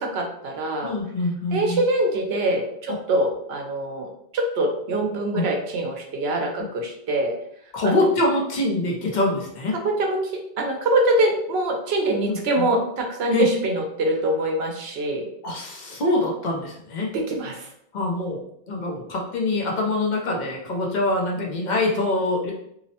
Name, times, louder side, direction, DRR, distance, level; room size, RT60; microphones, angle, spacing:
voice 1, 0.0-0.9 1.5-7.3 7.8-8.0 9.8-10.3 10.6-15.3 17.1-17.7, right 1 dB, 75° right, 1 dB, 0.9 m, -24 dB
voice 2, 0.8-1.8 5.3-5.5 6.6-6.7 7.7-9.8 12.3-12.6 13.3-13.5 15.4-17.1 17.9-22.5, left 2 dB, 50° left, -1 dB, 0.7 m, -24 dB
2.8 x 2.0 x 2.7 m, 0.73 s
omnidirectional pair, 1.1 m